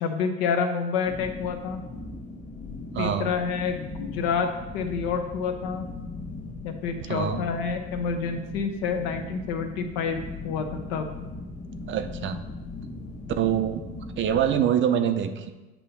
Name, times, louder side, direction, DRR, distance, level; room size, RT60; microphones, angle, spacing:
voice 1, 0.0-1.8 3.0-4.5 4.7-5.9 6.6-11.1, left 5 dB, 75° left, 6 dB, 0.9 m, -28 dB
sound 1, 1.0-14.6, left 3 dB, 25° left, 1.3 m, -39 dB
voice 2, 2.9-3.3 7.1-7.4 11.9-12.4 13.4-13.9 14.2-15.5, right 9 dB, 40° right, 9 dB, 0.6 m, -25 dB
8.4 x 2.8 x 5.6 m, 1.1 s
supercardioid pair, 100°, 29 cm